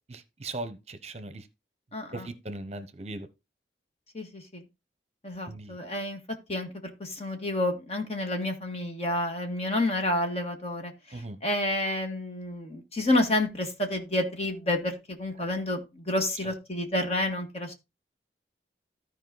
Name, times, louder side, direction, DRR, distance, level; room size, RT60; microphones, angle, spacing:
voice 1, 0.1-1.4 2.1-3.3 5.5-5.7 11.1-11.4, right 2 dB, 35° right, 0.8 m, -38 dB
voice 2, 1.9-2.3 4.1-4.6 5.2-6.2 6.5-17.7, left 1 dB, 35° left, 1.7 m, -29 dB
13.5 x 4.9 x 3.9 m
head